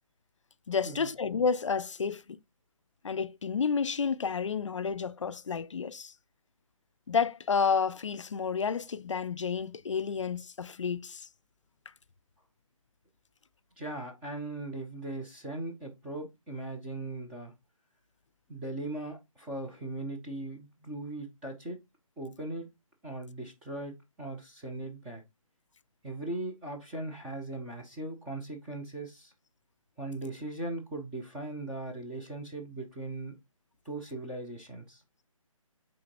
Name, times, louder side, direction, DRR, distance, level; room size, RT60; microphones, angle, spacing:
voice 1, 0.7-2.4 3.0-6.1 7.1-11.3, left 6 dB, 60° left, 0.5 m, -30 dB
voice 2, 13.8-17.5 18.5-21.8 22.2-22.7 23.0-25.2 26.0-29.3 30.0-33.3 33.8-35.0, right 2 dB, 5° right, 0.4 m, -39 dB
8.6 x 3.8 x 2.9 m
figure-of-eight pair, 150°, 18 cm